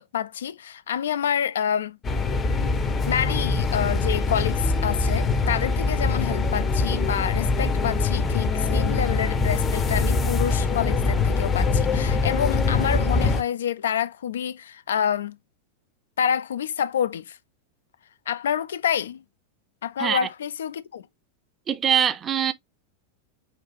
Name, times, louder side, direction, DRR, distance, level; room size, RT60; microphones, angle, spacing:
voice 1, 0.1-2.0 3.1-15.4 16.2-17.4 18.3-19.2 19.8-21.1, left 9 dB, 65° left, 0.4 m, -27 dB
sound 1, 2.0-13.4, left 4 dB, 25° left, 0.7 m, -23 dB
voice 2, 21.7-22.5, right 8 dB, 25° right, 0.5 m, -23 dB
5.7 x 2.4 x 2.9 m
figure-of-eight pair, 90°, 0 cm